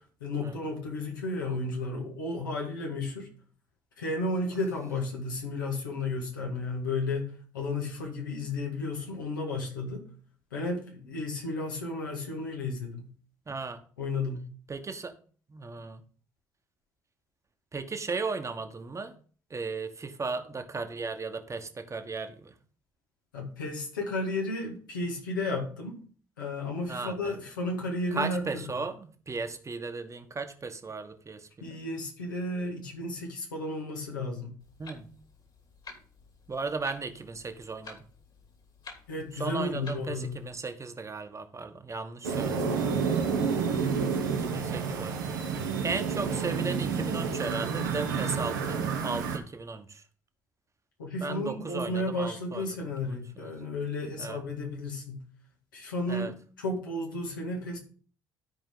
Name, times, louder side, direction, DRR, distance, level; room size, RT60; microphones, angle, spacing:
voice 1, 0.2-3.3 4.0-10.0 10.5-13.1 14.0-14.5 23.3-26.0 26.4-28.6 31.6-34.5 39.1-40.4 44.5-44.6 51.0-55.2 55.7-56.3 56.6-57.8, left 2 dB, 85° left, -1 dB, 2.0 m, -33 dB
voice 2, 13.5-13.8 14.7-15.1 15.5-16.0 17.7-19.1 19.5-22.6 26.9-27.3 28.1-31.8 34.8-35.1 36.5-38.0 39.3-43.6 44.3-50.0 51.2-53.5 54.2-54.4 56.1-56.3, right 4 dB, 30° right, 7 dB, 1.2 m, -36 dB
Clock, 34.6-40.5, left 4 dB, 45° left, 2.7 m, -51 dB
sound 1, 42.2-49.4, right 6 dB, 80° right, 1.1 m, -29 dB
13.0 x 5.0 x 3.8 m, 0.43 s
figure-of-eight pair, 50°, 10 cm